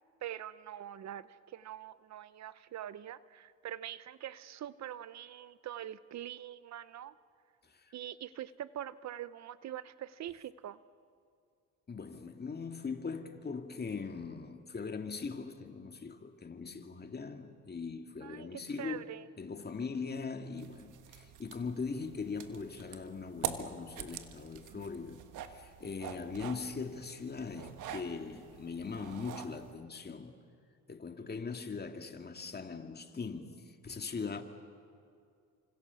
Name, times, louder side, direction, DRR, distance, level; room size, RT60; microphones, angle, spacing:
voice 1, 0.2-7.1 7.9-10.8 18.2-19.3, right 11 dB, 60° right, 0.8 m, -44 dB
voice 2, 11.9-19.1 19.4-25.2 25.5-30.3 30.9-34.4, left 5 dB, 35° left, 2.3 m, -40 dB
sound 1, 20.6-29.7, right 9 dB, 85° right, 1.5 m, -45 dB
30.0 x 26.0 x 7.1 m
cardioid pair, 90°, 30 cm